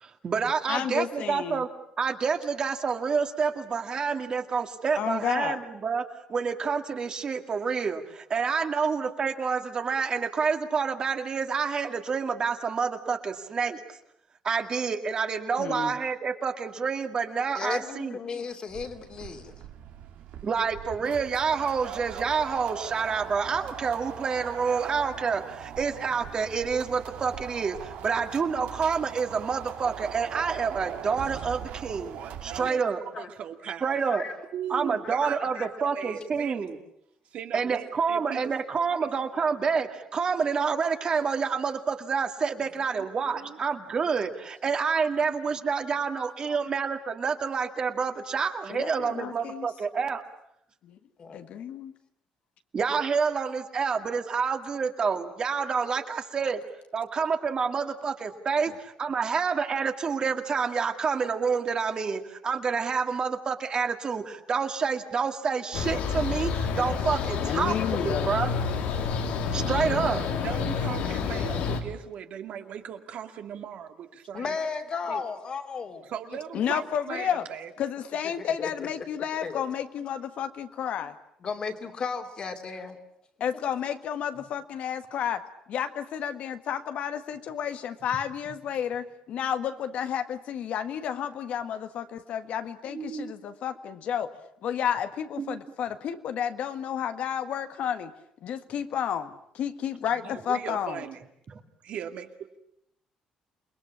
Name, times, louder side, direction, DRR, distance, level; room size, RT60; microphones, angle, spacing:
voice 1, 0.0-1.7 2.0-6.0 6.3-13.8 14.4-18.2 20.4-33.0 33.8-34.2 34.7-36.8 37.5-50.2 52.7-56.6 56.9-68.5 69.5-70.2 92.9-93.3 95.4-95.6, right 5 dB, 35° right, 6 dB, 2.1 m, -28 dB
voice 2, 0.7-1.6 5.0-5.6 15.6-15.9 46.5-46.6 48.7-49.7 50.8-51.0 51.3-51.9 58.7-58.8 67.4-68.3 76.5-77.4 77.8-81.1 83.4-85.4 85.7-94.3 94.6-98.1 98.4-101.0, left 9 dB, 65° left, 9 dB, 1.6 m, -31 dB
voice 3, 17.5-19.6 33.1-33.3 34.0-34.5 35.0-35.1 35.5-35.7 51.2-51.4 74.3-76.0 78.4-78.7 79.0-79.1 79.4-79.6 81.4-83.0 100.2-100.4 100.7-100.8, left 5 dB, 40° left, 5 dB, 2.8 m, -35 dB
sound 1, 18.7-32.7, right 9 dB, 80° right, 2.3 m, -40 dB
voice 4, 32.5-32.8 33.2-34.0 34.5-36.7 37.3-38.5 38.9-39.1 42.8-43.6 69.9-70.0 70.4-74.6 75.1-75.2 76.0-77.7 100.2-101.2 101.8-102.6, right 9 dB, 65° right, 6 dB, 2.4 m, -38 dB
sound 2, 65.7-71.8, left 6 dB, 90° left, 3.2 m, -29 dB
28.5 x 21.0 x 8.7 m, 0.77 s
cardioid pair, 140°, 2 cm